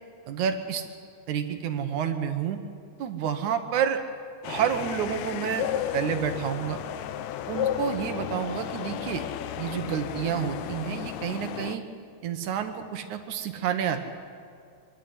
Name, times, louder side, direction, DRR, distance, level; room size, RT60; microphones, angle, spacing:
voice 1, 0.3-0.8 1.3-2.6 3.0-4.0 4.5-5.7 5.9-6.8 7.5-9.2 9.6-11.9 12.2-14.1, right 8 dB, 65° right, 7 dB, 2.4 m, -29 dB
sound 1, 4.4-11.8, left 10 dB, 85° left, 1.6 m, -33 dB
24.0 x 11.5 x 9.5 m, 2.3 s
omnidirectional pair, 4.1 m